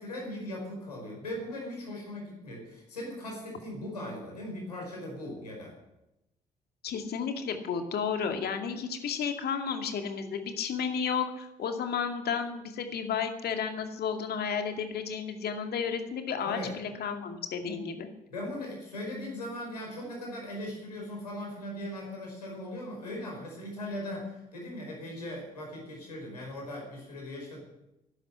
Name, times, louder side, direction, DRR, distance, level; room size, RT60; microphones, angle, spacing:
voice 1, 0.0-5.7 16.4-16.8 18.3-27.6, left 1 dB, 85° left, -1 dB, 5.0 m, -39 dB
voice 2, 6.8-18.1, left 6 dB, 55° left, 6 dB, 2.3 m, -32 dB
12.0 x 11.5 x 9.9 m, 0.91 s
figure-of-eight pair, 45°, 20 cm